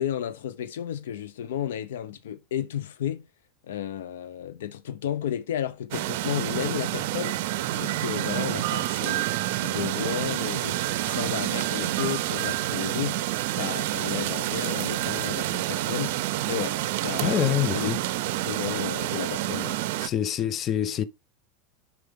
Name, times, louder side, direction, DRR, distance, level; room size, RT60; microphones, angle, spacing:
voice 1, 0.0-3.3 3.7-7.4 7.7-9.3 9.5-17.4 17.7-17.9 18.3-19.8, left 10 dB, 85° left, 0.7 m, -33 dB
sound 1, 5.9-20.1, right 16 dB, 70° right, 0.5 m, -28 dB
voice 2, 17.2-18.0 20.0-21.0, left 10 dB, 35° left, 0.5 m, -25 dB
6.7 x 4.9 x 3.7 m
supercardioid pair, 120°, 0 cm